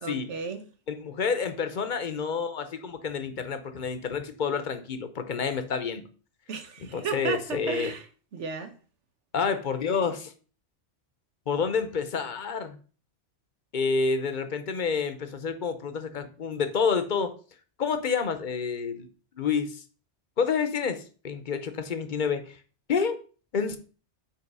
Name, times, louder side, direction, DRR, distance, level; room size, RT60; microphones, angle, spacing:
voice 1, 0.0-0.7 6.5-8.1 8.3-8.7, right 5 dB, 75° right, 1.2 m, -34 dB
voice 2, 0.9-6.1 6.9-7.9 9.3-10.3 11.5-12.8 13.7-17.3 17.8-19.1 19.4-19.8 20.4-22.6 22.9-23.2 23.5-23.8, left 5 dB, 45° left, 0.8 m, -29 dB
5.6 x 4.4 x 5.4 m
omnidirectional pair, 1.2 m